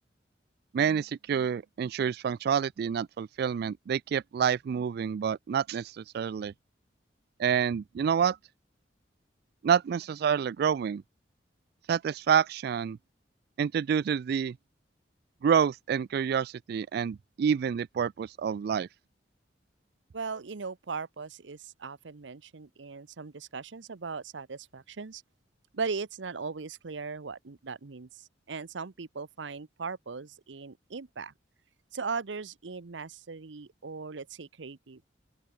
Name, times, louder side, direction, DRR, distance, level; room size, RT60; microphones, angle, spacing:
voice 1, 0.7-6.5 7.4-8.4 9.6-11.0 11.9-13.0 13.6-14.6 15.4-18.9, right 7 dB, 60° right, 0.3 m, -28 dB
voice 2, 20.1-25.2 25.7-31.3 31.9-35.0, right 4 dB, 85° right, 0.8 m, -38 dB
open air
head